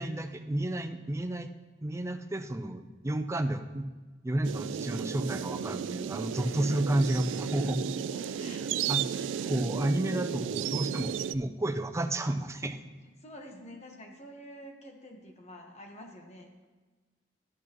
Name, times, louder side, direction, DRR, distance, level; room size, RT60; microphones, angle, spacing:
voice 1, 0.0-1.5 1.8-3.9 4.2-7.8 8.9-9.0 9.5-12.8, right 1 dB, 15° right, 7 dB, 0.5 m, -31 dB
sound 1, 4.4-11.4, right 8 dB, 90° right, 0.3 m, -34 dB
voice 2, 6.5-9.0 13.0-16.5, equal, 40° left, 2 dB, 1.2 m, -48 dB
12.0 x 8.4 x 3.0 m, 1.3 s
head